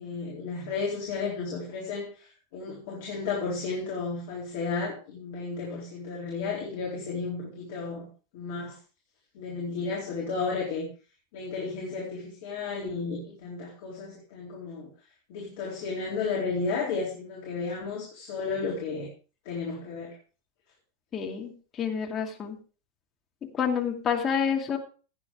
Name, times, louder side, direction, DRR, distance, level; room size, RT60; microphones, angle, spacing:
voice 1, 0.0-8.1 8.3-8.7 9.3-10.9 11.3-14.9 15.3-19.1 19.4-20.1, left 4 dB, 50° left, -3 dB, 4.2 m, -33 dB
voice 2, 21.1-22.6 23.5-24.8, left 7 dB, 25° left, 1 dB, 2.5 m, -28 dB
16.0 x 9.6 x 3.5 m, 0.36 s
figure-of-eight pair, 90°, 0 cm